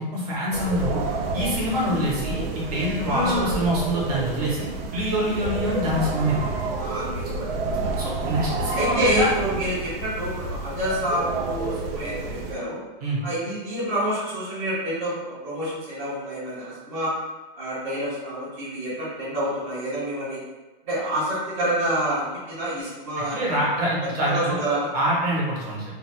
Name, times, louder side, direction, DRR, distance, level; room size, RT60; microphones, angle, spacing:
voice 1, 0.1-1.0 1.3-6.5 8.0-9.3 13.0-13.2 23.3-24.6 24.9-25.8, equal, 40° right, -6 dB, 1.0 m, -25 dB
sound 1, 0.5-12.5, right 3 dB, 85° right, 0.5 m, -29 dB
voice 2, 3.0-3.6 6.8-7.8 8.4-12.8 13.2-17.1 17.5-20.4 20.9-23.7 24.3-24.9, equal, 20° right, -14 dB, 0.6 m, -28 dB
2.6 x 2.3 x 3.1 m, 1.2 s
supercardioid pair, 180°, 29 cm